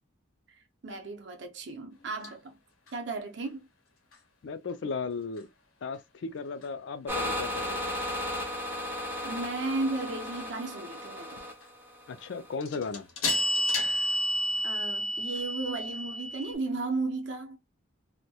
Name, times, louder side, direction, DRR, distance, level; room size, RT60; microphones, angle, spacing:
voice 1, 0.5-2.6 2.9-3.7 9.2-11.5 14.6-17.6, right 3 dB, 55° right, 0.6 m, -34 dB
sound 1, 2.2-2.3 12.6-16.5, equal, 85° left, 0.7 m, -30 dB
voice 2, 4.4-5.5 5.8-8.0 12.1-13.1, left 4 dB, 60° left, 0.3 m, -36 dB
sound 2, 7.1-12.5, left 1 dB, 10° right, 0.4 m, -35 dB
2.2 x 2.1 x 2.7 m
head